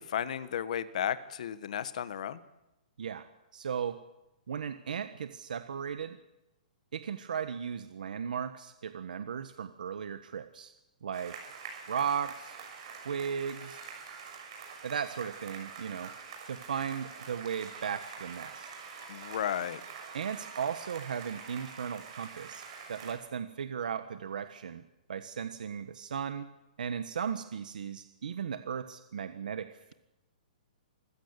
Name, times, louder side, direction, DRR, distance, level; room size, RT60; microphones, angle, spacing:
voice 1, 0.0-2.4 19.1-19.8, left 9 dB, 60° left, 13 dB, 1.4 m, -34 dB
voice 2, 3.5-4.0 4.5-6.2 6.9-10.7 11.0-11.6 11.9-12.6 13.0-13.8 14.8-16.1 16.5-18.7 20.1-24.8 25.1-26.5 26.8-29.9, right 7 dB, 80° right, 9 dB, 1.3 m, -36 dB
sound 1, 11.1-23.1, right 6 dB, 40° right, 6.5 m, -46 dB
25.5 x 16.0 x 8.2 m, 0.95 s
hypercardioid pair, 165°, 4 cm